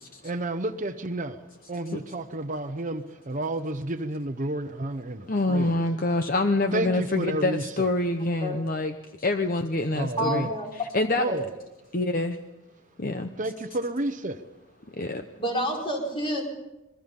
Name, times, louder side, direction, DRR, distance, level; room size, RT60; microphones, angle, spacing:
voice 1, 0.2-5.7 6.7-7.7 9.9-10.5 11.2-11.4 13.4-14.4, right 1 dB, 40° right, 9 dB, 0.9 m, -31 dB
voice 2, 5.3-11.2 11.9-12.4 13.0-13.3 14.9-15.3, left 2 dB, 40° left, 7 dB, 0.9 m, -26 dB
voice 3, 10.2-10.7 11.3-11.4 15.4-16.4, equal, 25° left, -1 dB, 4.7 m, -28 dB
26.5 x 21.5 x 5.5 m, 0.97 s
head